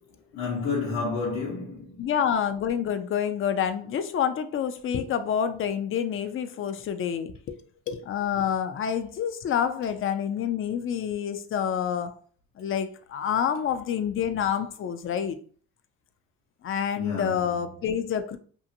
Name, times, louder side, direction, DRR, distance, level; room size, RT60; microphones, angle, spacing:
voice 1, 0.3-2.1 17.0-17.7, left 4 dB, 70° left, 0.9 m, -31 dB
voice 2, 2.0-7.6 7.9-12.1 12.6-15.4 16.6-18.4, left 8 dB, 45° left, 0.4 m, -28 dB
2.6 x 2.5 x 2.6 m
cardioid pair, 90°, 30 cm